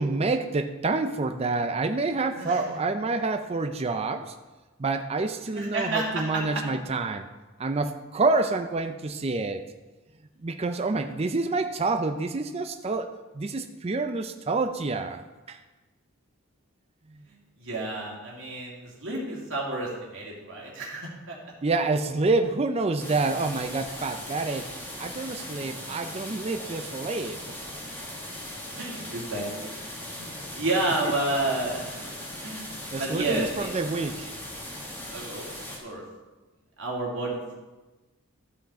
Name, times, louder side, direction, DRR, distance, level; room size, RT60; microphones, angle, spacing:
voice 1, 0.0-4.3 4.8-7.3 7.6-9.6 10.4-15.2 15.5-15.6 17.1-17.2 21.6-24.7 25.0-27.4 31.1-31.2 32.9-34.3, right 3 dB, 30° right, 7 dB, 0.5 m, -28 dB
voice 2, 2.3-2.7 5.5-6.2 6.5-6.6 17.6-21.4 28.8-32.1 32.4-33.7 35.1-35.4 35.8-36.0 36.8-37.4, right 2 dB, 65° right, -3 dB, 2.5 m, -31 dB
sound 1, 23.0-35.8, left 1 dB, 10° left, 1.5 m, -39 dB
12.5 x 5.9 x 4.3 m, 1.2 s
head